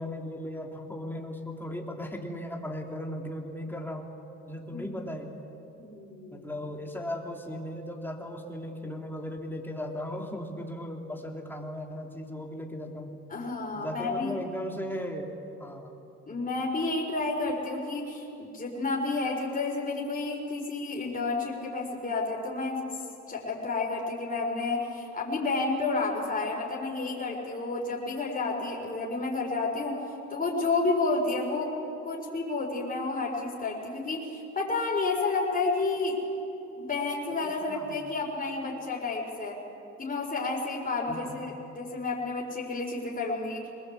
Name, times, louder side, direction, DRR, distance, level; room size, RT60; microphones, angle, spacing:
voice 1, 0.0-4.1 4.5-5.4 6.3-13.2 13.7-15.3 15.6-15.9 37.4-37.9 41.1-41.4, left 1 dB, 5° left, 1 dB, 3.1 m, -37 dB
voice 2, 5.8-6.5 13.3-14.4 16.3-22.8 23.3-30.0 30.3-31.7 32.0-36.2 36.8-39.6 40.0-43.7, left 3 dB, 30° left, -3 dB, 4.8 m, -30 dB
23.0 x 20.0 x 8.3 m, 3.0 s
cardioid pair, 90°, 30 cm